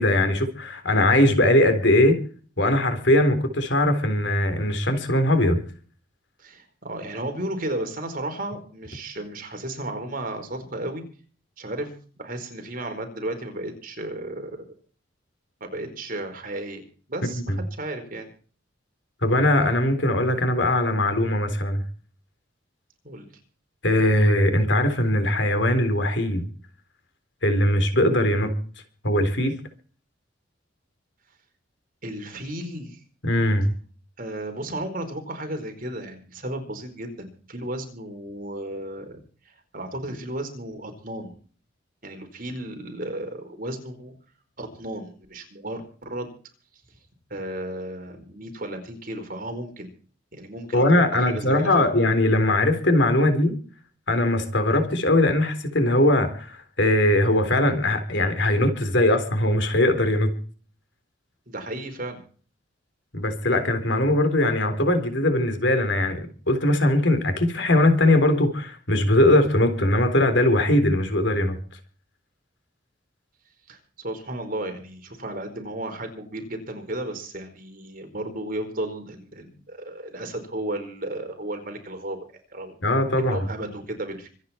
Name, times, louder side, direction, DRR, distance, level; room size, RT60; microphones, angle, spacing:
voice 1, 0.0-2.2 2.6-5.6 17.3-17.6 19.2-21.8 23.8-26.4 27.4-28.5 29.0-29.6 33.2-33.7 50.7-53.5 54.1-60.3 63.1-66.2 66.5-71.6 82.8-83.5, left 1 dB, 60° left, 8 dB, 3.7 m, -20 dB
voice 2, 6.4-11.0 11.6-11.9 12.2-14.6 15.6-16.8 17.1-18.3 23.0-23.3 32.0-33.0 34.2-39.2 39.4-41.3 42.0-44.1 44.6-46.3 47.3-49.9 50.3-51.9 61.5-62.2 73.7-84.3, right 1 dB, 45° right, 6 dB, 4.6 m, -34 dB
25.5 x 9.5 x 4.4 m, 0.41 s
head